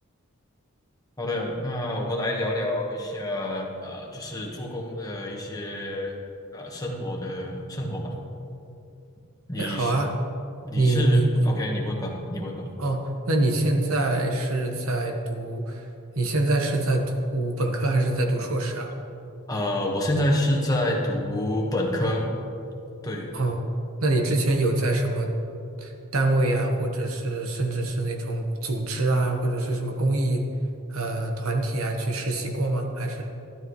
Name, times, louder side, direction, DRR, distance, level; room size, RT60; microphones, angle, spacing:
voice 1, 1.2-6.1 6.5-8.1 9.5-9.9 10.6-12.7 19.5-22.3 23.0-23.3, left 1 dB, 15° left, -2 dB, 1.4 m, -28 dB
voice 2, 9.6-10.1 10.7-11.3 12.8-15.9 16.1-17.0 17.3-18.9 23.3-23.6 24.0-25.3 25.8-30.4 30.9-33.2, right 2 dB, 75° right, 3 dB, 1.2 m, -25 dB
12.5 x 12.0 x 3.2 m, 2.7 s
head